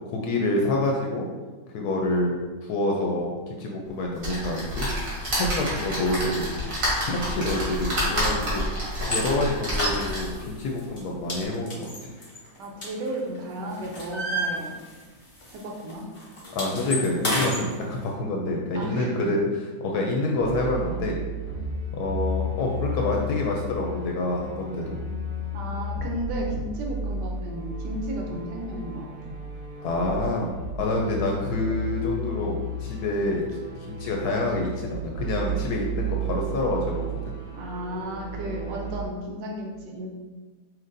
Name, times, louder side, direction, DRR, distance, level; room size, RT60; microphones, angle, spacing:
voice 1, 0.1-1.3 1.7-2.3 2.6-4.9 5.2-6.7 7.0-12.1 16.5-21.2 21.9-25.0 28.3-28.4 29.8-30.5 30.8-33.6 33.9-37.3 38.7-38.8, left 2 dB, 75° left, 0 dB, 1.0 m, -27 dB
sound 1, 4.2-10.4 11.0-11.1 11.3-11.4, equal, 65° right, 2.0 m, -28 dB
sound 2, 9.0-9.2 9.7-10.5 10.8-11.0 11.3-13.4 13.7-15.2 15.4-15.6 15.9-17.6, equal, 50° left, 0.3 m, -30 dB
voice 2, 12.6-14.8 15.5-16.1 18.7-19.3 25.5-29.3 37.5-40.1, right 1 dB, 85° right, 0 dB, 1.3 m, -34 dB
sound 3, 20.4-39.1, equal, 45° right, 0.7 m, -33 dB
5.8 x 2.6 x 2.5 m, 1.3 s
omnidirectional pair, 1.8 m